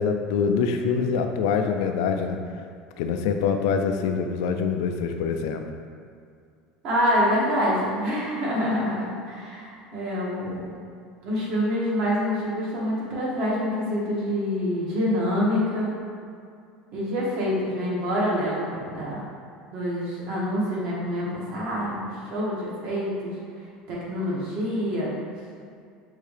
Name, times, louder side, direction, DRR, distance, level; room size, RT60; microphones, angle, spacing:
voice 1, 0.0-2.4 3.0-5.6, left 6 dB, 80° left, 5 dB, 0.4 m, -25 dB
voice 2, 6.8-10.7 11.2-16.0 16.9-19.2 19.7-23.4 23.9-25.1, equal, 55° right, -6 dB, 1.5 m, -26 dB
5.6 x 2.7 x 3.3 m, 2.3 s
supercardioid pair, 120°, 2 cm